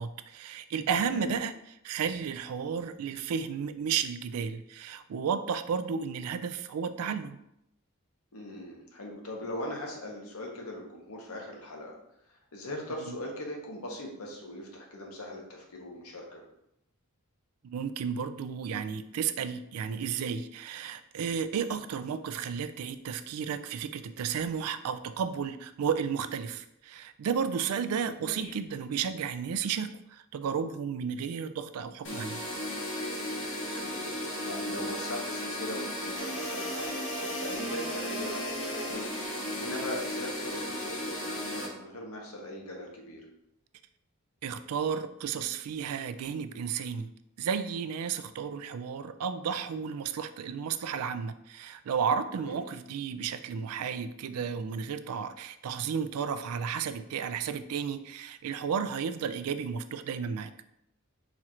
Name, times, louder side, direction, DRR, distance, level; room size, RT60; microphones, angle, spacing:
voice 1, 0.0-1.5 1.8-7.4 13.1-13.2 17.6-32.4 44.4-47.1 47.4-60.5, right 6 dB, 80° right, 11 dB, 0.3 m, -33 dB
voice 2, 8.3-12.0 12.5-16.4 28.2-28.5 33.4-43.2 52.4-52.6, left 1 dB, 80° left, 0 dB, 1.0 m, -40 dB
sound 1, 32.0-41.7, equal, 55° left, 1.2 m, -35 dB
4.3 x 2.4 x 4.4 m, 0.79 s
head